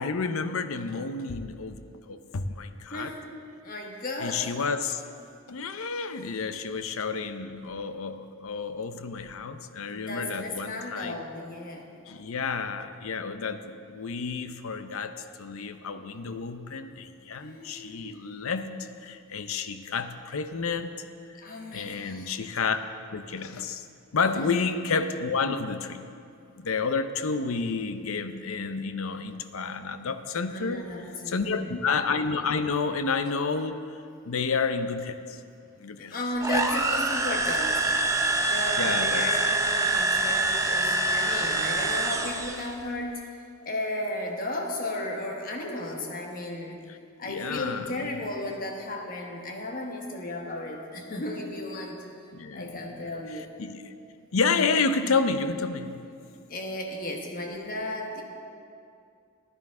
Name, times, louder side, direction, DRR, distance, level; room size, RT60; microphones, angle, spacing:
voice 1, 0.0-1.8 2.1-3.1 4.2-5.0 5.5-11.2 12.1-20.9 21.7-22.8 23.1-23.9 24.1-26.0 26.6-30.8 31.3-33.8 34.3-35.4 35.8-36.2 38.8-39.3 47.3-48.1 52.3-52.8 53.6-53.9 54.3-56.0, left 4 dB, 70° left, 9 dB, 0.6 m, -30 dB
voice 2, 2.9-3.2 3.6-4.5 9.9-11.9 17.4-18.2 21.4-22.3 30.5-31.7 35.9-43.2 43.6-46.8 47.2-52.0 52.5-53.5 56.5-58.2, left 1 dB, 40° left, 1 dB, 1.2 m, -34 dB
sound 1, 36.4-42.7, right 2 dB, 15° right, 0.5 m, -25 dB
14.5 x 10.0 x 3.7 m, 2.5 s
head